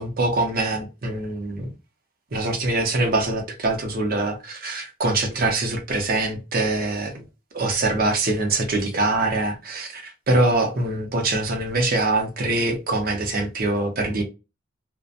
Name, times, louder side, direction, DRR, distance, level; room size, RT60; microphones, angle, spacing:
voice 1, 0.0-1.7 2.3-7.2 7.5-14.2, right 2 dB, 50° right, 0.7 m, -24 dB
2.7 x 2.1 x 2.4 m
head